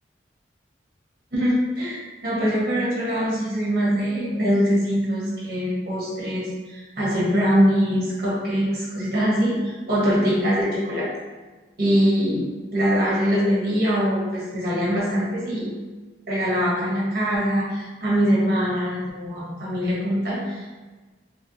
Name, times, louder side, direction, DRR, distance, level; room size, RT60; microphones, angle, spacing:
voice 1, 1.3-11.1 11.8-12.5 12.7-15.7 16.3-20.7, equal, 55° right, -7 dB, 1.4 m, -23 dB
3.3 x 3.2 x 2.8 m, 1.3 s
head